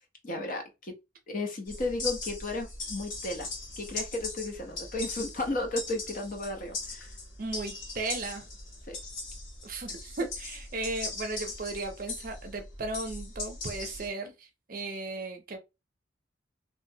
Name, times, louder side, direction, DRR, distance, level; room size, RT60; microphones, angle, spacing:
voice 1, 0.2-0.9 1.3-3.5 3.8-7.1 8.9-9.0, left 2 dB, 45° left, 0.6 m, -34 dB
sound 1, 1.7-14.1, left 3 dB, 85° left, 1.1 m, -39 dB
voice 2, 7.4-8.4 9.6-15.6, right 2 dB, 45° right, 0.6 m, -36 dB
2.9 x 2.2 x 2.6 m
head